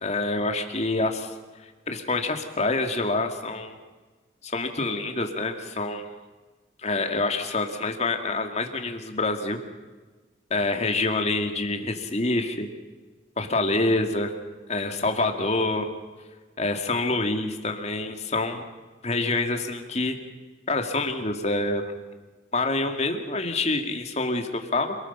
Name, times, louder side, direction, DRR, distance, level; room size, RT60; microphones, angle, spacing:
voice 1, 0.0-1.3 1.9-3.8 4.4-6.1 6.8-9.6 10.5-12.7 13.4-14.3 14.7-15.9 16.6-18.6 19.0-20.2 20.7-21.9 22.5-25.0, left 2 dB, 35° left, 5 dB, 2.2 m, -26 dB
27.5 x 19.5 x 5.6 m, 1.3 s
head